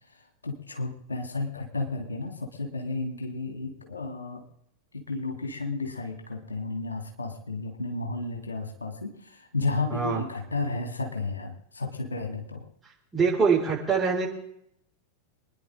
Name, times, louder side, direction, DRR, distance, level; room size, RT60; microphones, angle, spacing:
voice 1, 0.4-4.4 4.9-12.6, left 3 dB, 75° left, 2 dB, 3.1 m, -32 dB
voice 2, 9.9-10.2 13.1-14.3, right 5 dB, 15° right, -4 dB, 6.1 m, -24 dB
26.5 x 10.5 x 4.0 m, 0.71 s
figure-of-eight pair, 90°, 0 cm